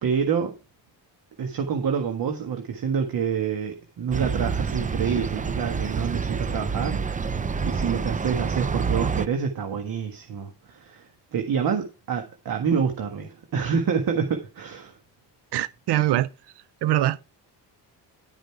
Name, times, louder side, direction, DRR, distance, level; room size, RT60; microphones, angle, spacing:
voice 1, 0.0-0.6 1.4-7.0 7.6-11.0 11.3-15.0, right 6 dB, 55° right, 1.6 m, -27 dB
sound 1, 4.1-9.3, right 5 dB, 20° right, 0.5 m, -28 dB
voice 2, 15.5-16.3 16.8-17.2, right 14 dB, 70° right, 0.6 m, -23 dB
11.5 x 5.2 x 4.6 m
cardioid pair, 90°, 41 cm